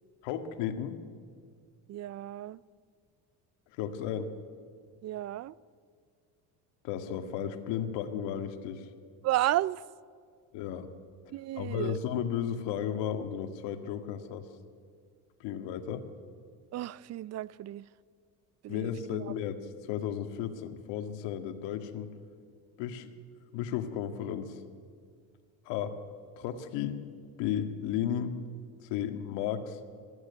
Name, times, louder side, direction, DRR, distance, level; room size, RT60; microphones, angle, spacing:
voice 1, 0.2-1.0 3.8-4.3 6.8-8.9 10.5-10.9 11.6-14.5 15.4-16.1 18.7-22.1 22.8-23.1 23.5-24.6 25.7-26.0 26.4-27.0 27.4-28.4 28.9-29.8, left 9 dB, 75° left, 1.8 m, -34 dB
voice 2, 1.9-2.6 5.0-5.5 9.2-9.8 11.3-12.0 16.7-17.9 18.6-19.3, right 14 dB, 40° right, 0.5 m, -33 dB
21.0 x 14.5 x 9.7 m
cardioid pair, 110°, 43 cm